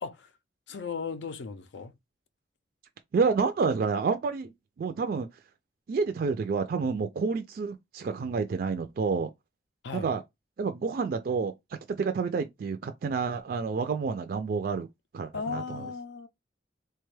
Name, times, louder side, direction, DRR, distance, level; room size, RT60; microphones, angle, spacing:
voice 1, 0.0-0.3 0.7-1.9 9.8-10.1 15.3-16.3, left 5 dB, 85° left, 0.4 m, -36 dB
voice 2, 3.1-4.5 4.8-5.3 5.9-9.3 9.9-10.2 10.6-11.5 11.9-14.9 15.1-15.9, right 5 dB, 55° right, 0.3 m, -29 dB
3.3 x 2.2 x 3.1 m
head